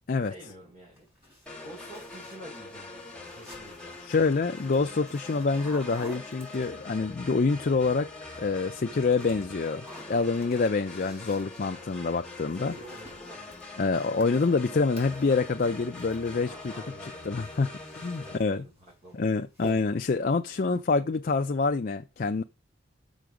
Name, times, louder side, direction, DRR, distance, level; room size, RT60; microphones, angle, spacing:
voice 1, 0.2-1.4 1.6-4.0 12.5-13.4 16.4-17.3 18.2-19.3, right 1 dB, 35° right, 4.2 m, -48 dB
sound 1, 0.9-7.0 8.1-8.6 8.9-16.8 17.0-18.5 18.9-19.2 19.5-20.1, equal, 10° right, 4.8 m, -50 dB
sound 2, 1.5-18.4, left 2 dB, 5° left, 1.6 m, -44 dB
voice 2, 4.0-8.1 8.4-12.7 13.8-16.7 17.2-18.6 19.1-22.4, left 4 dB, 45° left, 0.4 m, -26 dB
6.8 x 5.2 x 6.3 m
head